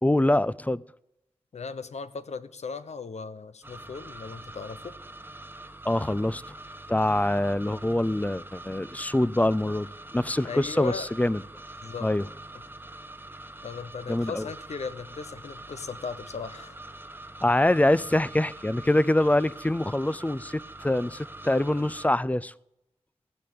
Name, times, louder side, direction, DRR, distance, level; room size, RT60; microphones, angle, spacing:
voice 1, 0.0-0.8 5.8-6.6 6.9-9.9 10.1-11.4 12.0-12.2 14.1-14.5 17.4-22.5, left 1 dB, 15° left, 0.5 m, -24 dB
voice 2, 1.5-4.9 10.4-11.1 11.8-12.1 13.6-16.8, left 5 dB, 75° left, 0.9 m, -37 dB
sound 1, 3.6-22.1, right 1 dB, 20° right, 1.2 m, -44 dB
15.5 x 6.7 x 8.6 m
cardioid pair, 45°, 11 cm